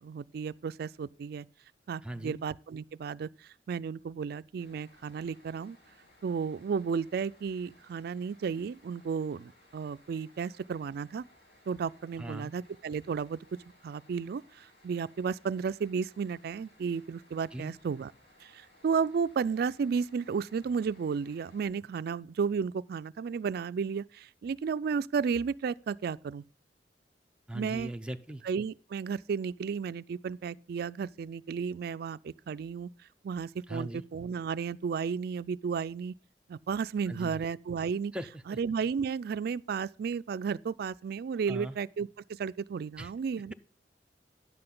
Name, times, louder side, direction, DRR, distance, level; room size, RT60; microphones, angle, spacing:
voice 1, 0.0-1.5 1.9-3.3 3.7-5.8 6.2-11.2 11.7-13.4 13.8-18.1 18.4-26.4 27.5-27.9 28.4-32.9 33.2-36.1 36.5-38.1 38.5-43.5, right 6 dB, 60° right, 0.3 m, -33 dB
voice 2, 2.0-2.4 12.2-12.5 17.5-17.7 27.5-28.4 33.7-34.0 37.1-37.4 38.1-38.6 41.5-41.8 43.0-43.1, right 1 dB, 5° right, 0.6 m, -39 dB
sound 1, 4.6-21.7, left 1 dB, 85° left, 5.5 m, -62 dB
10.5 x 7.8 x 3.8 m
head